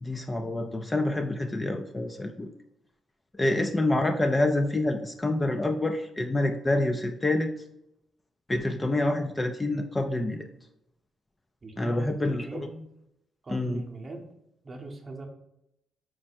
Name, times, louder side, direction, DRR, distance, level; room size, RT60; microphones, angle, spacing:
voice 1, 0.0-2.5 3.4-7.5 8.5-10.5 11.8-12.7 13.5-13.8, left 2 dB, 20° left, 5 dB, 0.4 m, -27 dB
voice 2, 11.6-12.8 13.4-14.2 14.6-15.3, right 2 dB, 30° right, 2 dB, 0.8 m, -40 dB
4.6 x 2.1 x 4.2 m, 0.83 s
cardioid pair, 90°, 0 cm